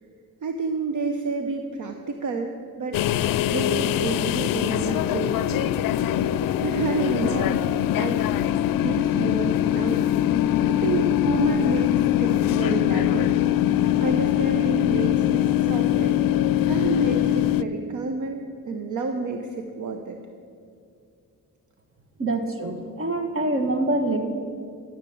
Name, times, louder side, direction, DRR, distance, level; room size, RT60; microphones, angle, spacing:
voice 1, 0.4-3.0 3.5-5.7 6.6-7.6 8.0-8.2 8.8-10.0 10.7-13.3 13.6-16.2 16.7-20.2, right 4 dB, 60° right, 5 dB, 0.9 m, -30 dB
sound 1, 2.9-17.6, left 12 dB, 80° left, 0.5 m, -22 dB
voice 2, 22.2-24.2, right 2 dB, 40° right, 6 dB, 1.6 m, -25 dB
14.0 x 7.4 x 7.1 m, 2.4 s
cardioid pair, 80°, 34 cm